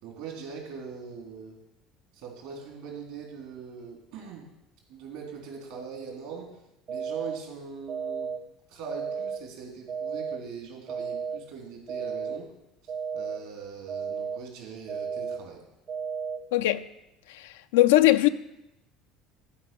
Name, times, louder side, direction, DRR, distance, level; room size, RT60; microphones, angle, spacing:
voice 1, 0.0-1.6 2.1-4.5 4.9-6.5 6.9-8.3 8.7-12.5 13.1-15.6, right 6 dB, 70° right, 3.5 m, -41 dB
sound 1, 6.9-7.4 7.9-8.4 8.9-9.4 9.9-10.4 10.9-11.4 11.9-12.4 12.9-13.4 13.9-14.4 14.9-15.4 15.9-16.4, right 6 dB, 45° right, 1.2 m, -33 dB
voice 2, 16.5-16.8 17.3-18.3, left 16 dB, 75° left, 0.5 m, -21 dB
13.0 x 5.2 x 6.9 m
hypercardioid pair, 65°, 0 cm